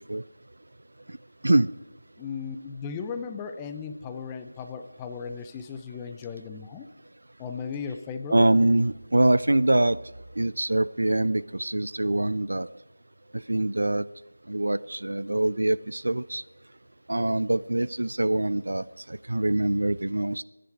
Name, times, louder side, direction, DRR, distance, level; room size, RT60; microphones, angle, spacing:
voice 1, 2.2-6.9 7.4-8.5, left 6 dB, 10° left, 8 dB, 0.6 m, -36 dB
voice 2, 8.3-10.0 10.4-12.7 13.5-14.1 14.5-16.4 17.1-20.4, right 1 dB, 75° right, 17 dB, 0.5 m, -24 dB
27.5 x 10.5 x 4.9 m, 1.1 s
figure-of-eight pair, 170°, 0 cm